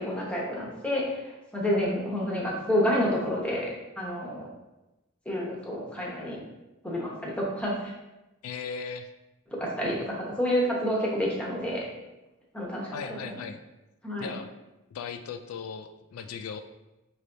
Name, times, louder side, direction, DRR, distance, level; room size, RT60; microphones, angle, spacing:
voice 1, 0.0-3.7 4.0-4.5 5.2-6.4 6.8-7.9 9.5-11.8 12.5-13.3 14.0-14.4, equal, 5° left, -4 dB, 0.9 m, -29 dB
voice 2, 8.4-9.1 12.9-13.6 14.2-14.5 14.9-16.6, left 6 dB, 85° left, 8 dB, 0.3 m, -37 dB
5.4 x 3.3 x 2.6 m, 0.98 s
head